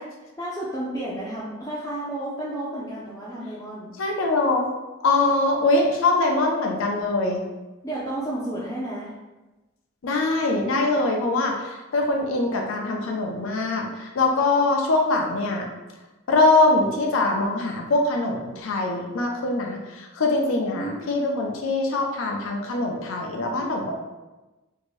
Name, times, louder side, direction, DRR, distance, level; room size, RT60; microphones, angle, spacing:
voice 1, 0.4-4.0 7.8-9.1 20.5-21.3, right 1 dB, 15° left, -9 dB, 0.4 m, -32 dB
voice 2, 4.0-4.6 5.0-7.4 10.0-15.7 16.3-23.9, left 2 dB, 85° left, 1 dB, 0.5 m, -23 dB
2.7 x 2.6 x 3.1 m, 1.1 s
head